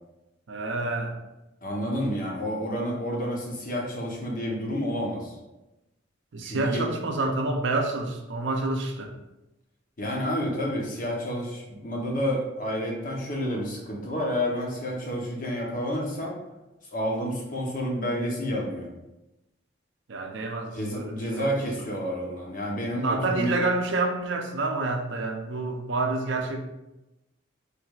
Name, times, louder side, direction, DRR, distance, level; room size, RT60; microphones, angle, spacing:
voice 1, 0.5-1.2 6.3-9.1 20.1-21.5 23.0-26.7, right 2 dB, 70° right, 4 dB, 0.5 m, -28 dB
voice 2, 1.6-5.3 6.4-6.9 10.0-16.4 16.9-18.9 20.7-23.5, equal, 45° left, -2 dB, 0.8 m, -29 dB
4.6 x 3.3 x 2.4 m, 0.98 s
head